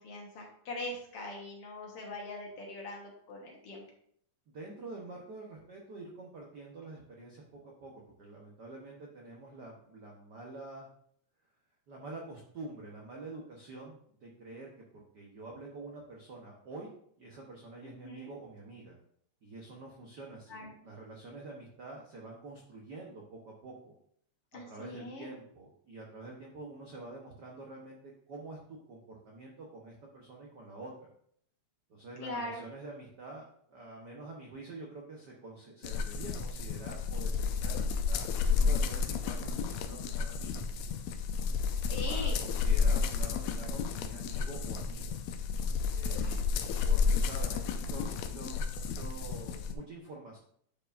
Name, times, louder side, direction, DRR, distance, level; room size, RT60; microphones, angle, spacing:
voice 1, 0.0-3.8 17.8-18.3 20.5-20.8 24.5-25.3 32.2-32.6 41.9-42.4 46.2-46.9, left 2 dB, 60° left, -1 dB, 2.0 m, -42 dB
voice 2, 4.5-10.9 11.9-16.9 17.2-19.0 19.4-23.9 24.7-31.1 31.9-40.8 42.0-45.2 45.9-46.5 46.9-50.4, right 2 dB, 75° right, -2 dB, 0.9 m, -47 dB
sound 1, 35.8-49.7, left 5 dB, 80° left, 1.7 m, -31 dB
10.5 x 4.7 x 2.5 m, 0.65 s
omnidirectional pair, 3.3 m